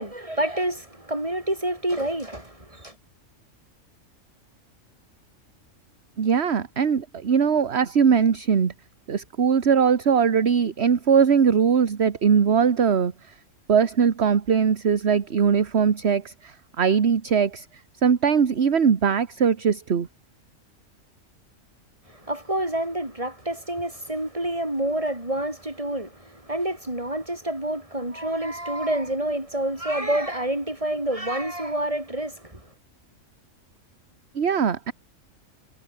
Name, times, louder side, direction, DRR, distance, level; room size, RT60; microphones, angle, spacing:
voice 1, 0.0-2.9 22.1-32.6, right 1 dB, 25° right, 5.7 m, -28 dB
voice 2, 6.2-8.7 9.1-13.3 13.7-17.7 18.0-20.1 34.3-34.9, right 6 dB, 55° right, 1.5 m, -21 dB
omnidirectional pair, 1.4 m